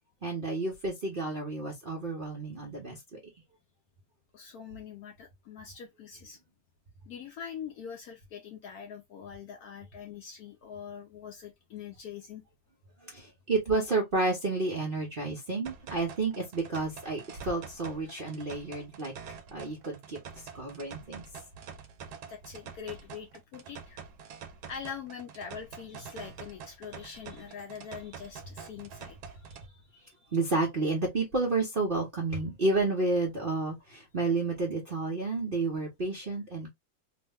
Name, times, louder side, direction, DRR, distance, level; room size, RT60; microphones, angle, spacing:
voice 1, 0.2-3.2 13.0-19.1 19.5-20.2 20.5-21.2 30.3-36.7, right 3 dB, 50° right, 0.6 m, -31 dB
voice 2, 4.3-6.4 7.1-12.4 22.3-24.0 24.7-29.9 30.2-30.3, left 7 dB, 70° left, 0.9 m, -43 dB
sound 1, 15.7-29.7, right 6 dB, 70° right, 1.1 m, -47 dB
3.1 x 2.1 x 3.4 m
omnidirectional pair, 2.0 m